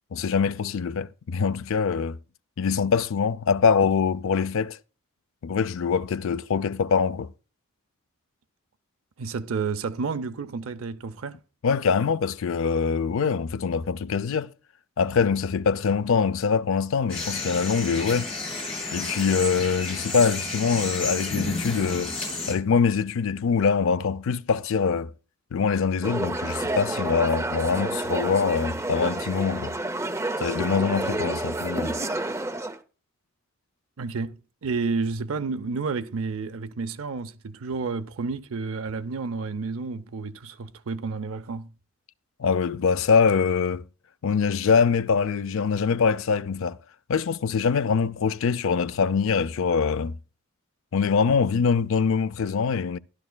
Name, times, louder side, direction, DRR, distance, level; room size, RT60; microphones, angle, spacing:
voice 1, 0.1-2.2 2.6-4.8 5.4-7.3 11.6-14.5 15.0-18.3 18.9-22.1 22.5-25.1 25.5-29.8 30.4-31.9 42.4-43.8 44.2-46.8 47.1-50.2 50.9-53.0, left 5 dB, 65° left, 0.4 m, -24 dB
voice 2, 9.2-11.4 34.0-41.7, right 4 dB, 75° right, 0.5 m, -31 dB
sound 1, 17.1-22.5, left 2 dB, 25° left, 6.8 m, -31 dB
sound 2, 26.0-32.8, right 2 dB, 15° right, 0.5 m, -29 dB
13.0 x 11.5 x 2.2 m
head